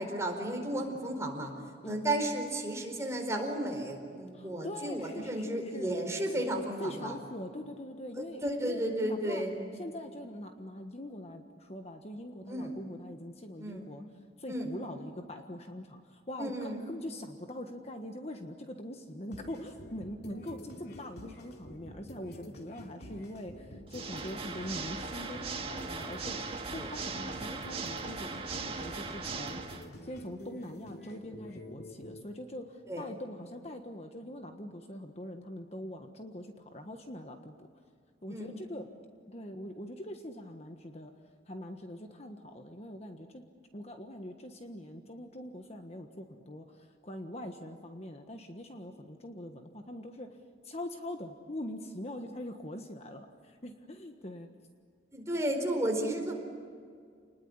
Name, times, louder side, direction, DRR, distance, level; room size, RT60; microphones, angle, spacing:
voice 1, 0.0-1.5 1.8-7.1 8.2-9.5 12.5-12.7 13.6-13.8 14.5-14.7 16.4-16.8 26.8-26.9 32.9-33.0 38.3-38.5 55.1-56.4, right 1 dB, 15° right, 2 dB, 4.5 m, -33 dB
voice 2, 4.3-6.0 6.8-9.4 9.7-14.0 14.4-29.6 30.0-37.7 38.2-38.9 39.3-41.1 41.5-43.4 43.7-50.3 50.6-54.5, left 1 dB, 35° left, 5 dB, 1.5 m, -43 dB
sound 1, 19.3-32.2, left 1 dB, 60° left, 2.9 m, -48 dB
Water / Mechanisms, 23.9-29.9, right 4 dB, 30° right, 1.9 m, -39 dB
29.5 x 20.5 x 9.8 m, 2.1 s
head